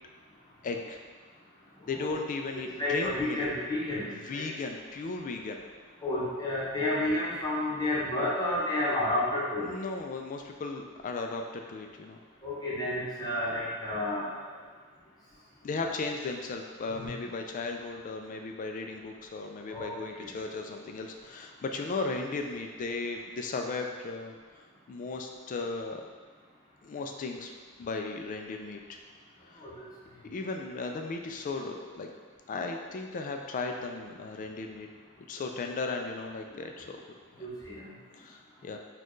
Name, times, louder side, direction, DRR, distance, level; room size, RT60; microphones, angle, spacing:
voice 1, 0.6-1.0 1.9-3.4 4.2-5.6 9.6-12.2 15.6-24.3 24.9-26.0 26.8-27.5 27.8-29.0 29.5-29.6 30.3-32.1 32.5-34.9 35.3-37.0 37.4-37.5 38.2-38.8, left 3 dB, 35° left, 4 dB, 0.3 m, -36 dB
voice 2, 2.8-4.5 6.0-9.7 12.4-14.3 15.8-15.9 16.9-17.1 19.7-19.9 20.2-20.3 29.6-29.7 37.4-37.8, left 1 dB, 20° left, -8 dB, 0.9 m, -31 dB
4.3 x 2.3 x 3.1 m, 1.5 s
head